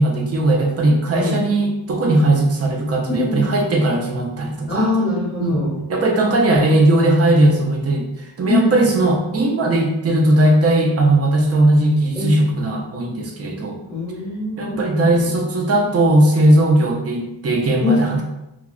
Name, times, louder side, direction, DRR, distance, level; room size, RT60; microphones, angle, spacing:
voice 1, 0.0-4.9 5.4-5.6 5.9-13.8 14.6-18.2, right 1 dB, 35° right, 2 dB, 0.5 m, -17 dB
voice 2, 3.1-3.5 4.7-5.8 8.4-8.9 12.1-12.4 13.9-15.3 17.8-18.1, left 2 dB, 10° right, -8 dB, 1.1 m, -22 dB
3.0 x 2.2 x 2.3 m, 0.94 s
wide cardioid pair, 105°, 45 cm